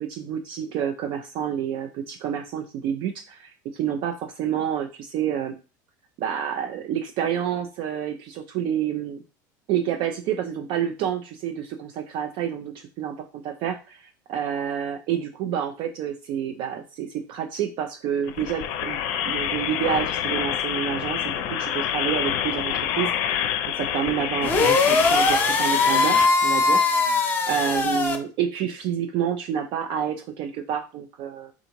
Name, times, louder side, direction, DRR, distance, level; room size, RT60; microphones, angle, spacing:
voice 1, 0.0-5.5 6.2-9.2 9.7-19.0 19.3-31.5, right 9 dB, 55° right, 5 dB, 0.4 m, -29 dB
sound 1, 18.3-26.3, left 10 dB, 65° left, 0.5 m, -27 dB
sound 2, 24.4-28.2, left 3 dB, 20° left, 0.7 m, -20 dB
3.5 x 2.5 x 3.0 m, 0.33 s
hypercardioid pair, 95°, 10 cm